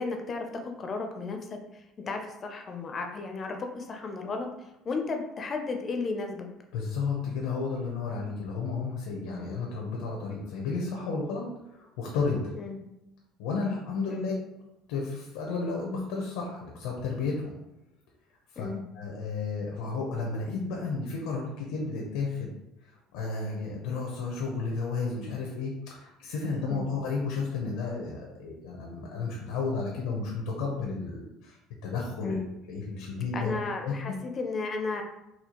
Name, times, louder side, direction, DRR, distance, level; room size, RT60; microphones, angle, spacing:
voice 1, 0.0-1.6 2.0-4.5 4.9-6.5 9.4-9.6 12.6-12.8 14.1-14.3 18.6-18.8 26.7-26.9 32.2-32.5 33.3-35.0, left 4 dB, 30° left, 4 dB, 0.4 m, -34 dB
voice 2, 6.7-12.4 13.4-14.3 14.9-17.5 18.5-18.7 18.9-22.5 22.8-33.5 33.8-34.1, left 4 dB, 90° left, -1 dB, 0.7 m, -32 dB
4.2 x 2.3 x 2.9 m, 0.90 s
cardioid pair, 140°, 0 cm